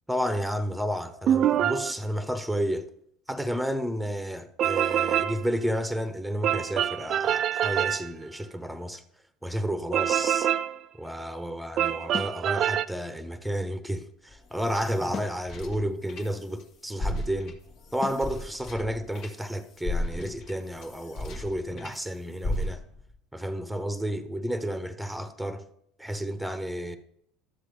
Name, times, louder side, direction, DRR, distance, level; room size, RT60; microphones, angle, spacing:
voice 1, 0.1-2.9 3.3-9.0 9.4-10.5 11.0-17.5 17.9-22.8 23.3-25.6 26.0-27.0, equal, ahead, 0.9 m, -31 dB
sound 1, 1.3-1.9 4.6-5.4 6.4-8.1 9.9-10.8 11.8-12.9, right 10 dB, 50° right, 0.3 m, -25 dB
sound 2, 12.1-12.4 15.1-15.4 18.0-18.3, left 6 dB, 35° left, 0.3 m, -36 dB
sound 3, 14.3-16.6 16.9-22.0 22.4-23.1, left 1 dB, 55° left, 1.5 m, -35 dB
12.0 x 7.5 x 3.4 m
hypercardioid pair, 75°, 0 cm